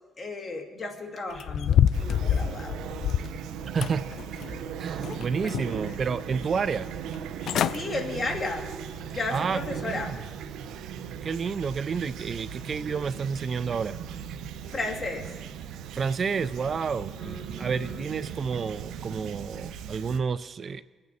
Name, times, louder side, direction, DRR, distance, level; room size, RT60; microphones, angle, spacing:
voice 1, 0.2-2.8 5.3-6.0 7.7-8.7 9.1-10.2 14.7-15.3 17.2-18.0, left 2 dB, 35° left, 3 dB, 2.0 m, -34 dB
sound 1, 1.4-3.4 3.8-4.6 5.0-5.9 6.3-6.4 7.1-7.2 7.4-7.8 8.2-8.5 9.0-9.1, left 9 dB, 70° left, 0.3 m, -26 dB
Fowl / Chirp tweet, 1.9-20.2, right 8 dB, 85° right, 0.7 m, -38 dB
voice 2, 3.7-4.1 4.8-6.9 9.3-10.0 11.2-14.0 15.9-20.8, right 5 dB, 45° right, 15 dB, 0.4 m, -30 dB
23.0 x 8.8 x 4.1 m, 1.4 s
cardioid pair, 90°, 0 cm